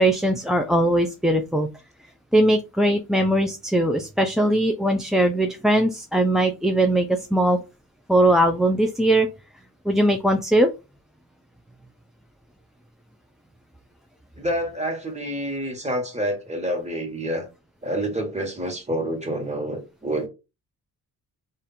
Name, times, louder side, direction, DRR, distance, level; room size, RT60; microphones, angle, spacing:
voice 1, 0.0-1.7 2.3-7.6 8.1-9.3 9.9-10.7, right 1 dB, ahead, 0.4 m, -20 dB
voice 2, 14.4-17.5 17.8-20.3, right 1 dB, 15° right, 1.5 m, -28 dB
3.5 x 2.5 x 4.2 m
cardioid pair, 75°, 40 cm